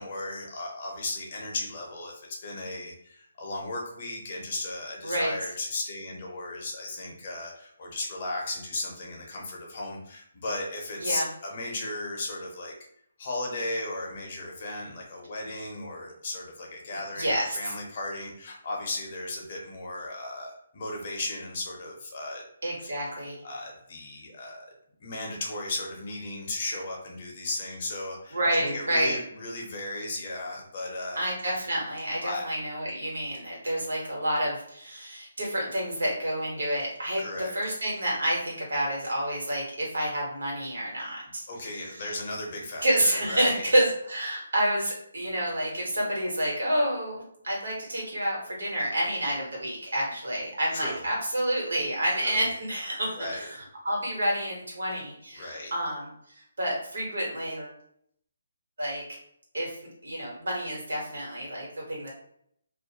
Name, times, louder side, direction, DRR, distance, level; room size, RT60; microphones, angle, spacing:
voice 1, 0.0-12.7 13.2-22.4 22.8-22.9 23.4-24.7 25.0-31.2 32.2-32.4 37.2-37.5 41.0-41.1 41.5-43.6 50.7-51.0 52.2-52.4 53.2-53.5 55.4-55.7, left 2 dB, 40° left, -1 dB, 0.7 m, -35 dB
voice 2, 17.2-17.7 22.6-23.4 28.3-29.2 31.1-37.2 37.5-42.0 42.8-56.1 56.6-57.7 58.8-59.2 59.5-59.8 60.0-62.1, right 1 dB, 80° right, -3 dB, 1.3 m, -29 dB
2.4 x 2.1 x 2.8 m, 0.70 s
hypercardioid pair, 165°, 0 cm